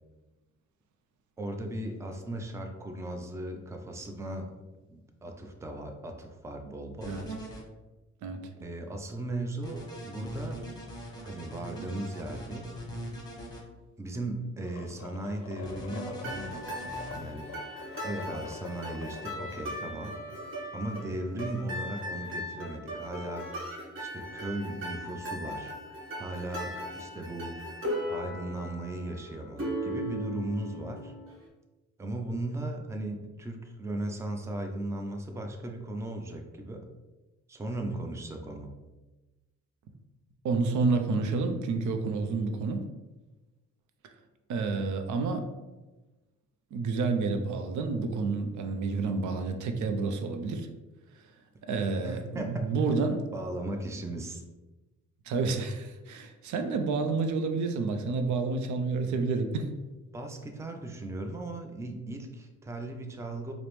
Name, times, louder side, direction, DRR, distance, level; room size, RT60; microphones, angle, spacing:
voice 1, 1.4-4.5 4.9-7.2 8.6-10.7 11.2-12.7 14.0-17.6 18.0-20.1 20.7-25.8 26.2-27.6 28.1-31.1 32.0-36.9 37.5-38.8 52.0-52.9 53.3-54.4 60.1-63.5, right 1 dB, 10° right, 4 dB, 0.4 m, -37 dB
sound 1, 7.0-7.6 9.6-13.6 15.6-17.2, right 1 dB, 15° left, 1.0 m, -41 dB
sound 2, 14.6-19.8, left 5 dB, 80° left, 0.5 m, -46 dB
sound 3, 16.2-31.3, equal, 45° right, 1.2 m, -38 dB
voice 2, 40.4-42.8 44.5-45.4 46.7-50.7 51.6-53.3 55.3-59.7, right 4 dB, 75° right, 6 dB, 0.5 m, -29 dB
4.8 x 2.0 x 3.1 m, 1.1 s
cardioid pair, 90°, 30 cm